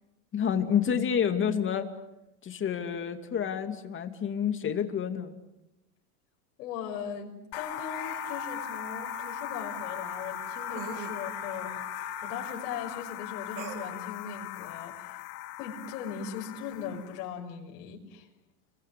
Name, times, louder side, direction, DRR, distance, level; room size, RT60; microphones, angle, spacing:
voice 1, 0.3-1.9 2.4-5.3, left 8 dB, 25° left, 7 dB, 2.6 m, -29 dB
voice 2, 6.6-11.9 12.2-15.2 15.6-18.3, left 7 dB, 80° left, 0 dB, 6.2 m, -39 dB
sound 1, 7.5-17.2, left 8 dB, 55° left, 2.7 m, -38 dB
sound 2, 8.4-8.5 10.8-11.2 13.6-14.1, right 8 dB, 40° right, 3.0 m, -41 dB
29.5 x 23.0 x 8.6 m, 0.94 s
supercardioid pair, 135°, 45 cm